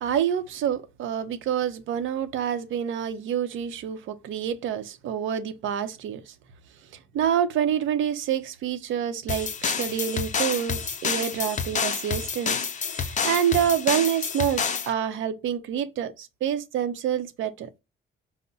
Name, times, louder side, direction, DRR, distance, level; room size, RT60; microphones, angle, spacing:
voice 1, 0.0-6.3 7.1-12.6 12.9-17.7, right 9 dB, 80° right, 0.8 m, -27 dB
sound 1, 9.3-14.9, left 6 dB, 40° left, 0.6 m, -29 dB
5.6 x 2.1 x 3.9 m
cardioid pair, 90°, 20 cm